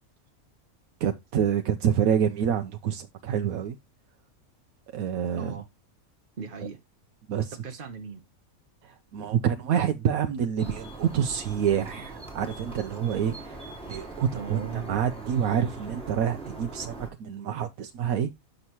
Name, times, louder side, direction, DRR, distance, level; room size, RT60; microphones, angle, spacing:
voice 1, 1.0-3.8 4.9-5.6 7.3-7.6 8.8-14.6 14.9-18.3, right 8 dB, 80° right, 1.1 m, -27 dB
voice 2, 5.3-5.7 6.4-6.8 7.6-8.2 14.3-15.0, right 5 dB, 45° right, 1.0 m, -38 dB
sound 1, 10.6-17.1, right 2 dB, 5° left, 3.5 m, -41 dB
9.5 x 6.5 x 2.9 m
omnidirectional pair, 1.5 m